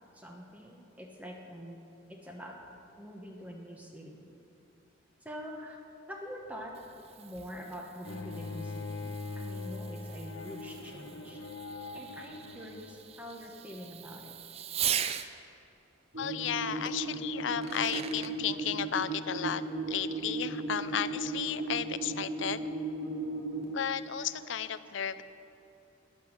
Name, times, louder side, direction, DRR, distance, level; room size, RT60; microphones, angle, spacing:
voice 1, 0.1-1.8 2.1-2.6 3.0-4.2 5.2-5.8 6.1-6.7 7.2-11.4 11.9-14.3, equal, 5° right, 0 dB, 1.0 m, -45 dB
Fireworks, 6.5-15.3 16.9-17.0 17.5-18.3, right 9 dB, 30° right, 0.4 m, -40 dB
Bowed string instrument, 8.0-13.1, left 3 dB, 85° left, 1.0 m, -41 dB
sound 1, 16.1-23.6, right 3 dB, 65° right, 3.3 m, -36 dB
voice 2, 16.2-19.6 19.9-22.7 23.7-25.2, left 9 dB, 60° left, 14 dB, 0.5 m, -34 dB
13.0 x 10.0 x 6.5 m, 2.9 s
head